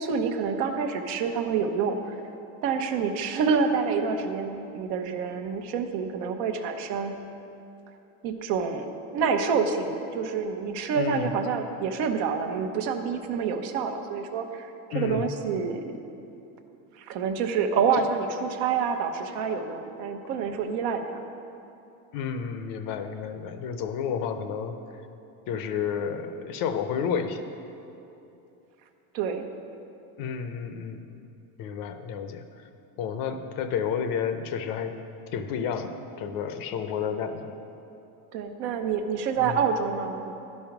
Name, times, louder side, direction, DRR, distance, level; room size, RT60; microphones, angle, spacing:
voice 1, 0.0-2.2 2.6-7.1 8.2-14.7 14.9-15.8 17.0-21.1 29.1-29.5 38.3-40.3, right 6 dB, 60° right, 6 dB, 0.9 m, -27 dB
voice 2, 10.9-11.3 14.9-15.3 22.1-25.0 25.5-27.4 30.2-31.0 31.6-32.7 33.0-35.0 35.3-37.6 39.4-39.6, left 7 dB, 50° left, 9 dB, 0.7 m, -31 dB
11.5 x 5.4 x 5.9 m, 2.8 s
supercardioid pair, 135°, 43 cm